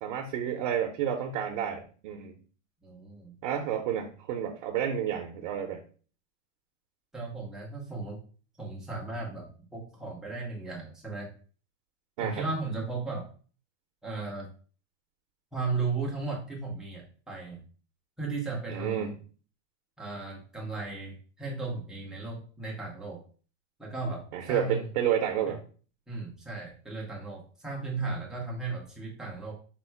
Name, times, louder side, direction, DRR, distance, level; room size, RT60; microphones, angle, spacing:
voice 1, 0.0-2.4 3.4-5.8 12.2-12.4 18.7-19.1 24.3-25.6, right 9 dB, 45° right, 3 dB, 0.6 m, -30 dB
voice 2, 2.8-3.3 7.1-8.2 8.6-11.3 12.2-13.3 14.0-14.5 15.5-17.6 18.2-19.1 20.0-23.2 23.8-24.9 25.5-25.6 26.1-29.5, right 3 dB, ahead, -3 dB, 0.4 m, -35 dB
4.3 x 2.0 x 4.3 m, 0.39 s
supercardioid pair, 150°, 38 cm